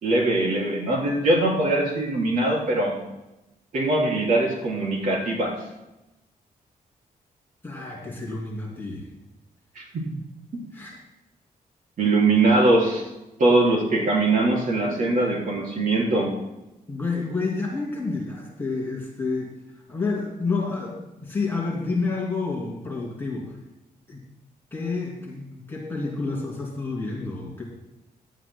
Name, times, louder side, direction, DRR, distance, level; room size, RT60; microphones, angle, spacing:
voice 1, 0.0-3.0 3.7-5.5 9.8-10.0 10.5-10.6 12.0-13.0 13.4-16.3, right 2 dB, 60° right, -3 dB, 3.9 m, -22 dB
voice 2, 7.6-9.1 10.7-10.9 16.9-19.5 19.9-23.5 24.1-24.2 24.7-27.6, left 3 dB, 15° left, -4 dB, 2.7 m, -29 dB
17.5 x 11.5 x 2.2 m, 0.96 s
wide cardioid pair, 155°, 16 cm